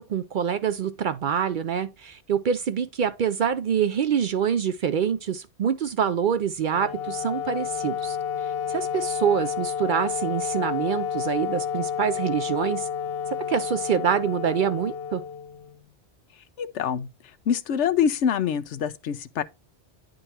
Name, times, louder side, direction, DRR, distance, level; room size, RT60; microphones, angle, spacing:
voice 1, 0.0-8.2 8.7-12.9 13.5-15.2, right 8 dB, 60° right, 0.5 m, -25 dB
Wind instrument woodwind instrument, 6.6-15.9, left 8 dB, 60° left, 0.9 m, -30 dB
voice 2, 16.6-17.1 17.5-19.4, left 8 dB, 90° left, 1.0 m, -25 dB
10.0 x 3.9 x 4.2 m
omnidirectional pair, 1.2 m